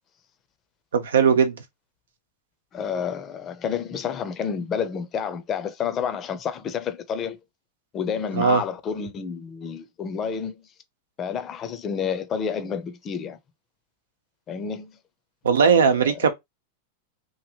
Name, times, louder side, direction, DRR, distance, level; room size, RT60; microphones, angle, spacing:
voice 1, 0.9-1.6 8.4-8.6 15.4-16.3, right 6 dB, 90° right, 0.8 m, -18 dB
voice 2, 2.7-7.4 7.9-10.7 11.2-13.4 14.5-14.9 15.6-15.8, left 7 dB, 30° left, 0.6 m, -29 dB
3.0 x 2.5 x 2.8 m
hypercardioid pair, 120°, 0 cm